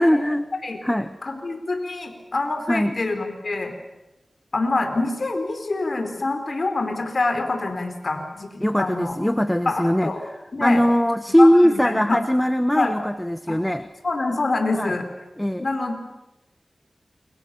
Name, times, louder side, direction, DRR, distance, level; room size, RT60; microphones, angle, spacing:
voice 1, 0.0-0.5 0.8-1.1 2.7-2.9 8.6-10.1 10.6-13.9 14.8-15.0 15.4-15.7, equal, 10° left, 11 dB, 1.3 m, -20 dB
voice 2, 1.2-3.7 4.5-9.1 9.6-10.2 10.5-10.8 11.4-12.2 12.7-12.9 13.5-13.6 14.0-15.0 15.6-16.0, left 3 dB, 60° left, 5 dB, 4.7 m, -26 dB
29.5 x 24.0 x 7.1 m, 0.99 s
cardioid pair, 45°, 0 cm